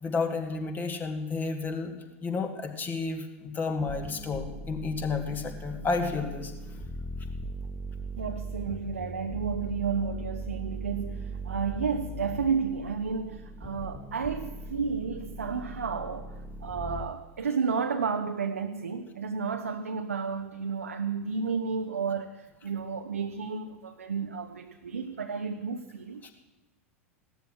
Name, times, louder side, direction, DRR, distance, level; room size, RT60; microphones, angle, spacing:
voice 1, 0.0-1.9 2.2-6.5 26.2-26.3, left 4 dB, 25° left, 2.1 m, -31 dB
sound 1, 3.8-17.0, right 2 dB, 5° right, 1.7 m, -39 dB
voice 2, 8.2-16.3 16.6-26.3, right 5 dB, 75° right, 0.8 m, -32 dB
17.5 x 12.5 x 6.5 m
figure-of-eight pair, 85°, 8 cm